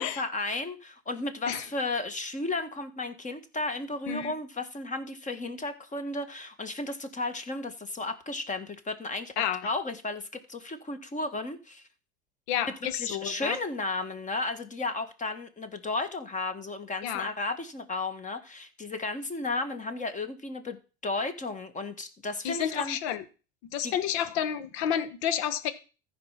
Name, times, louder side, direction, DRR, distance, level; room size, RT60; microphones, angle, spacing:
voice 1, 0.0-9.3 9.6-11.9 12.7-23.0 23.8-23.9, left 2 dB, 20° left, 1.7 m, -34 dB
voice 2, 9.4-9.7 12.5-13.6 17.0-17.3 22.4-23.2 23.7-25.7, left 9 dB, 65° left, 1.3 m, -30 dB
14.0 x 5.0 x 5.8 m
hypercardioid pair, 95°, 34 cm